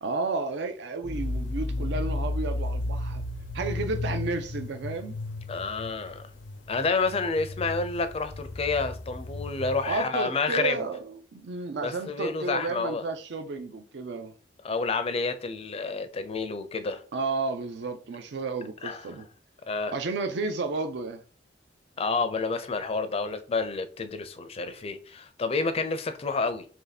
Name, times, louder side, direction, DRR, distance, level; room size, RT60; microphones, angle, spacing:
voice 1, 0.0-3.2 3.5-5.2 9.9-14.3 17.1-19.3 19.9-21.2, right 3 dB, 70° right, 0.4 m, -32 dB
sound 1, 1.0-10.0, left 2 dB, 85° left, 0.6 m, -34 dB
voice 2, 5.5-6.2 6.7-10.8 11.8-13.0 14.6-17.0 18.8-19.2 19.7-19.9 22.0-26.7, left 4 dB, 35° left, 0.4 m, -29 dB
2.9 x 2.7 x 3.9 m
head